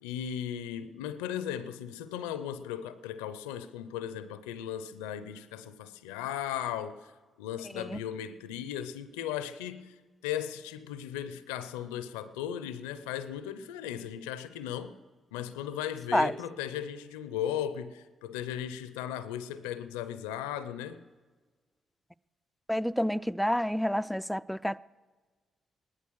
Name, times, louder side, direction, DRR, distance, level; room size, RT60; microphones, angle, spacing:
voice 1, 0.0-7.1 7.4-10.0 10.2-15.0 15.3-21.0, left 10 dB, 90° left, 0.5 m, -37 dB
voice 2, 22.7-24.8, equal, 5° left, 0.4 m, -28 dB
17.5 x 11.5 x 6.3 m
hypercardioid pair, 40°, 0 cm